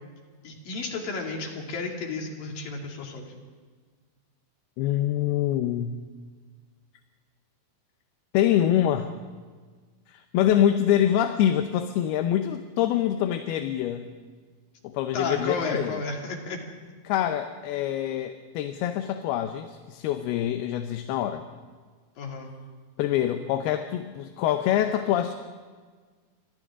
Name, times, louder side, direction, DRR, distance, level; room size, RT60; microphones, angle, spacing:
voice 1, 0.4-3.3 15.1-16.6 22.2-22.5, left 3 dB, 60° left, 1 dB, 4.2 m, -32 dB
voice 2, 4.8-6.0 8.3-9.1 10.1-14.1 14.8-16.0 17.0-21.5 23.0-25.3, left 11 dB, 80° left, 7 dB, 2.7 m, -25 dB
30.0 x 25.0 x 3.7 m, 1.5 s
omnidirectional pair, 4.7 m